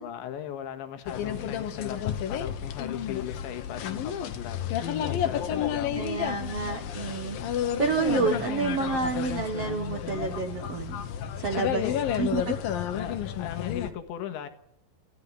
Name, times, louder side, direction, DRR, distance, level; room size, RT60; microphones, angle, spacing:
voice 1, 0.0-4.7 5.1-6.5 11.5-12.0 12.9-14.5, left 10 dB, 85° left, 7 dB, 3.9 m, -38 dB
sound 1, 1.1-13.9, left 9 dB, 65° left, 2.8 m, -31 dB
voice 2, 5.9-7.4 7.8-11.0 11.4-11.8 12.1-12.5, right 5 dB, 70° right, 6 dB, 1.4 m, -29 dB
29.0 x 15.0 x 9.8 m, 0.81 s
omnidirectional pair, 5.1 m